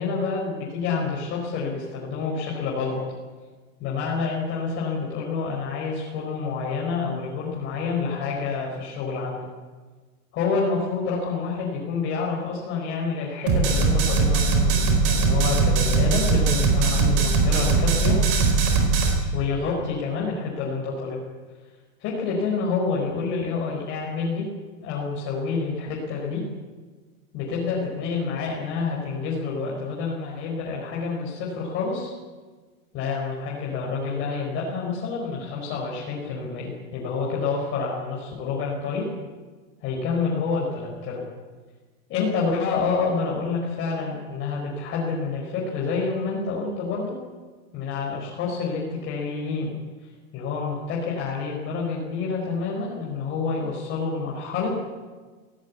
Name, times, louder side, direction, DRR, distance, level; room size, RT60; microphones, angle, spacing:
voice 1, 0.0-3.0 3.8-9.4 10.3-18.2 19.3-21.2 22.0-24.5 24.8-26.4 27.3-32.1 32.9-39.1 39.8-41.2 42.1-47.2 47.7-49.8 50.3-54.8, left 4 dB, 30° left, -4 dB, 4.6 m, -28 dB
sound 1, 13.5-19.1, right 4 dB, 30° right, 4.7 m, -20 dB
21.0 x 17.5 x 8.4 m, 1.4 s
supercardioid pair, 160°, 42 cm